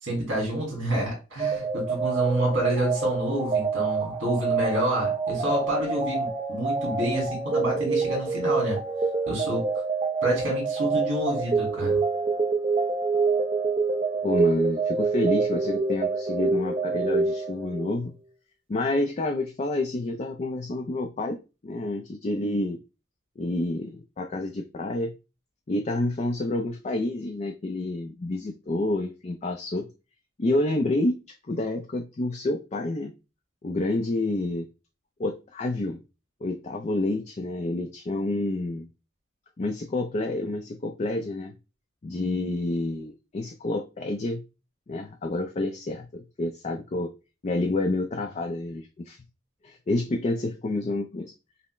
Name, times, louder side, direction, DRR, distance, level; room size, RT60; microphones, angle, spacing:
voice 1, 0.0-8.8 9.3-9.6 10.2-12.0, right 1 dB, 85° right, -2 dB, 2.0 m, -28 dB
sound 1, 1.4-18.0, right 4 dB, 30° right, 0.6 m, -26 dB
voice 2, 14.2-18.1 18.7-21.4 21.6-22.8 23.4-25.1 25.7-29.9 30.4-33.1 33.6-34.7 35.2-36.0 36.4-38.9 39.6-41.5 42.0-44.4 44.9-47.1 47.4-49.2 49.6-51.3, left 2 dB, 35° left, 4 dB, 0.4 m, -28 dB
5.4 x 2.0 x 3.1 m, 0.29 s
head